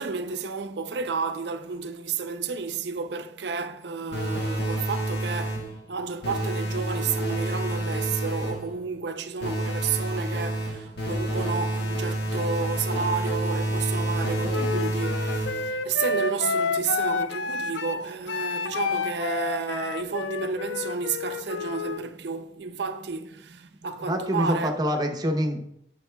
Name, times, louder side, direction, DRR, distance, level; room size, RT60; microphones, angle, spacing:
voice 1, 0.0-24.8, right 5 dB, 70° right, 0.5 m, -31 dB
sound 1, 4.1-5.8 6.2-8.7 9.4-15.8, right 1 dB, 65° left, 1.6 m, -28 dB
Wind instrument woodwind instrument, 14.5-22.0, left 4 dB, 90° left, 0.4 m, -30 dB
voice 2, 24.1-25.6, equal, 25° right, 0.8 m, -25 dB
9.9 x 6.5 x 2.3 m
head